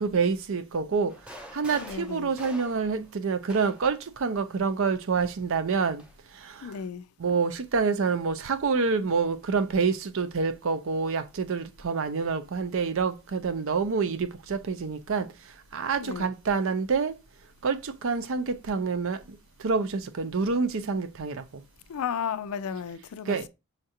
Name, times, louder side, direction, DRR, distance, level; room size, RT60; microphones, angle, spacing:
voice 1, 0.0-1.1 1.5-6.0 7.2-15.3 15.7-17.1 17.6-19.2 19.6-21.4 23.3-23.5, right 5 dB, 60° right, 0.5 m, -27 dB
sound 1, 1.1-4.0 5.1-6.2, equal, 5° right, 0.6 m, -47 dB
voice 2, 1.8-2.4 6.6-7.1 16.0-16.3 21.9-23.5, left 7 dB, 70° left, 0.4 m, -34 dB
6.4 x 2.4 x 2.8 m
head